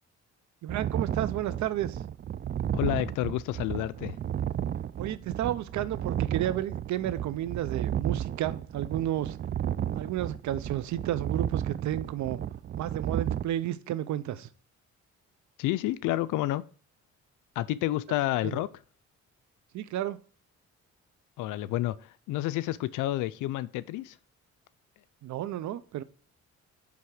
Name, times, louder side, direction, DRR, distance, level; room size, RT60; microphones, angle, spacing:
voice 1, 0.6-2.0 5.0-9.4 9.9-12.4 12.8-14.5 18.4-18.6 19.7-20.2 25.2-26.0, right 12 dB, 70° right, 0.6 m, -32 dB
sound 1, 0.7-13.4, right 10 dB, 35° right, 0.4 m, -33 dB
voice 2, 2.7-4.1 15.6-16.6 17.6-18.7 21.4-24.2, left 15 dB, 85° left, 0.5 m, -30 dB
9.4 x 3.5 x 4.8 m
cardioid pair, 90°, 30 cm